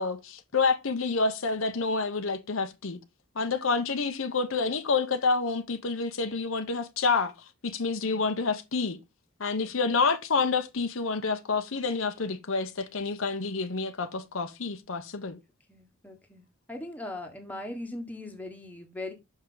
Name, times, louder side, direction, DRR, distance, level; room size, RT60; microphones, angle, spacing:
voice 1, 0.0-3.0 3.4-7.3 7.6-9.0 9.4-15.4, left 4 dB, 70° left, 0.8 m, -28 dB
voice 2, 15.7-19.1, left 1 dB, 10° left, 1.3 m, -40 dB
6.3 x 5.6 x 3.8 m
head